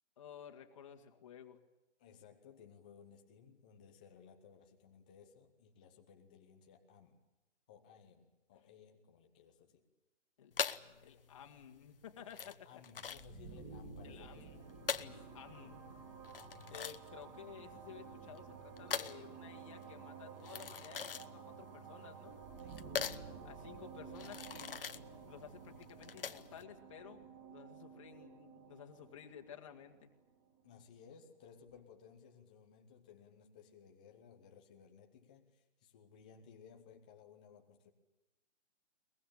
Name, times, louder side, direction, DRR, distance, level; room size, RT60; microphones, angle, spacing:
voice 1, 0.2-1.6 10.4-12.7 14.0-14.6 15.0-15.8 16.7-22.4 23.4-24.8 25.2-30.1, left 8 dB, 25° left, 3 dB, 2.0 m, -54 dB
voice 2, 2.0-7.2 7.7-9.9 12.4-14.6 15.0-15.2 22.6-23.0 30.6-37.9, left 7 dB, 5° left, 3 dB, 0.8 m, -60 dB
sound 1, 10.5-26.6, left 7 dB, 50° left, 1.2 m, -43 dB
sound 2, 13.1-30.7, right 5 dB, 20° right, 3.7 m, -52 dB
23.0 x 22.0 x 8.7 m, 0.98 s
hypercardioid pair, 170°, 36 cm